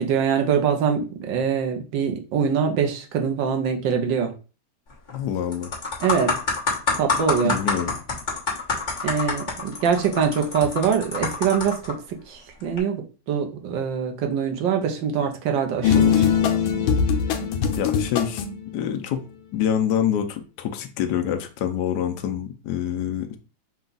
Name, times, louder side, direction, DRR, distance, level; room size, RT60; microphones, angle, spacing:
voice 1, 0.0-4.3 6.0-6.3 7.0-7.6 9.0-12.0 12.3-16.3 17.4-17.5, right 7 dB, 70° right, 4 dB, 1.5 m, -24 dB
sound 1, 4.9-5.2 5.5-11.9 12.6-12.8, left 4 dB, 30° left, 1.2 m, -27 dB
voice 2, 5.1-5.7 7.4-7.9 17.8-18.4 18.7-19.3 19.5-23.4, left 9 dB, 70° left, 6 dB, 1.1 m, -26 dB
sound 2, 15.8-18.6, left 7 dB, 85° left, 1.5 m, -21 dB
5.7 x 2.4 x 3.9 m, 0.34 s
omnidirectional pair, 2.2 m